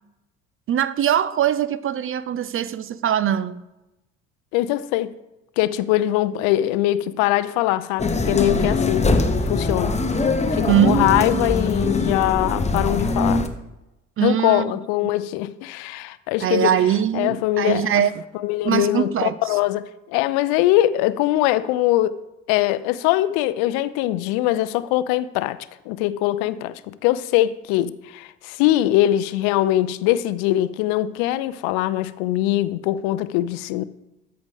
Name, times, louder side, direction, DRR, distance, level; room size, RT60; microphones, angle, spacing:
voice 1, 0.7-3.6 10.7-11.6 14.2-14.6 16.4-18.2 18.6-19.3, right 9 dB, 35° right, 0.4 m, -22 dB
voice 2, 4.5-5.1 5.6-9.1 9.4-10.0 10.5-13.5 14.2-16.7 17.1-17.9 18.3-22.1 22.5-25.6 25.9-33.8, left 14 dB, 65° left, 0.5 m, -22 dB
sound 1, 8.0-13.5, left 3 dB, 15° left, 0.9 m, -22 dB
13.0 x 4.9 x 3.5 m
hypercardioid pair, 55°, 40 cm